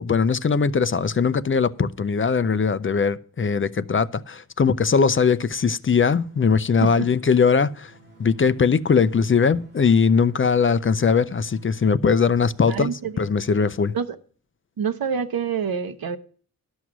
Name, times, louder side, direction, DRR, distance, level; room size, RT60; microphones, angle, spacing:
voice 1, 0.0-7.9 8.2-13.9, left 5 dB, 35° left, 0.5 m, -20 dB
sound 1, 6.1-11.7, right 1 dB, 30° right, 2.6 m, -53 dB
voice 2, 12.7-13.1 13.9-14.2 14.8-16.2, right 7 dB, 75° right, 0.9 m, -26 dB
12.5 x 6.3 x 6.0 m
wide cardioid pair, 175°, 36 cm